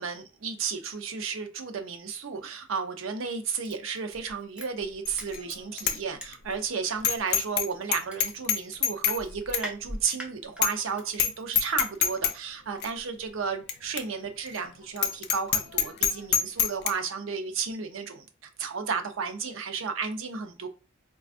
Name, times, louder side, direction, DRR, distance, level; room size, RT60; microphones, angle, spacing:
voice 1, 0.0-20.7, right 5 dB, 70° right, 6 dB, 0.5 m, -33 dB
Crushing, 3.6-6.6 7.0-11.9 12.2-12.3, equal, 5° right, 0.4 m, -41 dB
Bicycle bell, 5.1-5.4 5.8-6.0 6.3-6.4 7.0-7.7 7.9-9.2 9.5-9.7 10.1-10.2 10.6-10.9 11.1-11.3 11.6-12.3 12.8-12.9 13.7-13.8 14.0-14.1 14.5-14.6 15.0-16.9, left 8 dB, 55° left, 0.4 m, -25 dB
4.1 x 2.3 x 2.4 m, 0.32 s
head